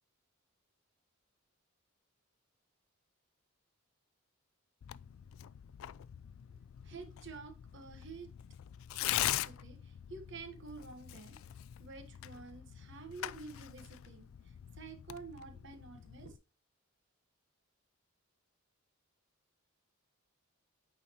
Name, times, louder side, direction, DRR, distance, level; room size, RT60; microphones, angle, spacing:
Tearing, 4.8-16.4, left 13 dB, 70° left, 0.3 m, -42 dB
voice 1, 6.8-8.3 8.9-16.4, right 4 dB, 55° right, 1.2 m, -50 dB
8.8 x 4.1 x 2.9 m
head